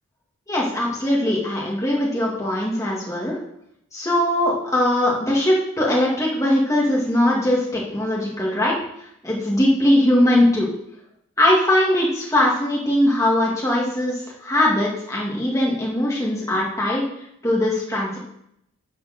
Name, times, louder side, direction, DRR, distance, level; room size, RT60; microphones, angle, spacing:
voice 1, 0.5-3.4 3.9-8.8 9.2-10.7 11.4-17.0 17.4-18.2, left 1 dB, 15° left, -5 dB, 2.1 m, -20 dB
10.5 x 4.4 x 6.5 m, 0.76 s
head